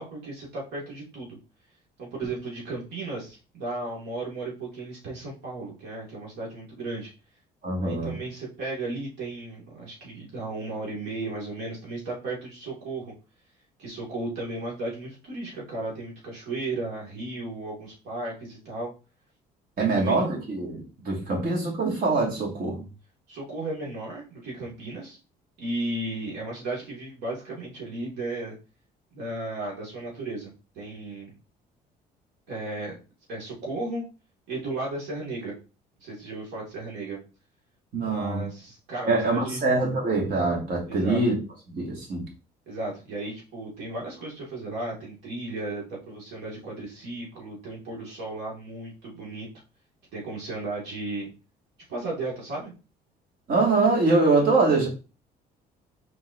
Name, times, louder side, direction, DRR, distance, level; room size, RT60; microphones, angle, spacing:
voice 1, 0.0-1.4 2.0-7.1 7.8-13.1 13.8-18.9 19.8-20.3 23.3-25.2 25.6-28.5 29.1-31.3 32.5-33.0 33.3-34.0 34.5-35.5 36.0-37.2 38.0-39.6 40.9-41.2 42.7-49.5 50.1-51.3 51.9-52.7, right 2 dB, 85° right, 2.1 m, -35 dB
voice 2, 7.6-8.2 19.8-22.9 37.9-38.4 39.1-41.3 41.7-42.3 53.5-54.9, right 3 dB, 55° right, 2.0 m, -24 dB
4.6 x 4.0 x 2.7 m
cardioid pair, 110°, 17 cm